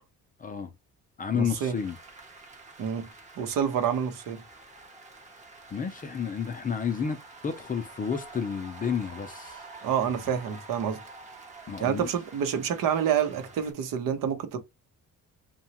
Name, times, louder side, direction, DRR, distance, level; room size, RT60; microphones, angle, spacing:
voice 1, 0.4-0.7 1.2-2.0 5.7-9.6 11.7-12.1, left 6 dB, 25° left, 0.4 m, -31 dB
voice 2, 1.3-1.8 2.8-3.1 3.4-4.4 9.8-11.0 11.8-14.6, right 8 dB, 75° right, 0.8 m, -28 dB
sound 1, 1.7-13.7, right 3 dB, 20° right, 0.7 m, -48 dB
2.9 x 2.2 x 2.8 m
cardioid pair, 155°, 33 cm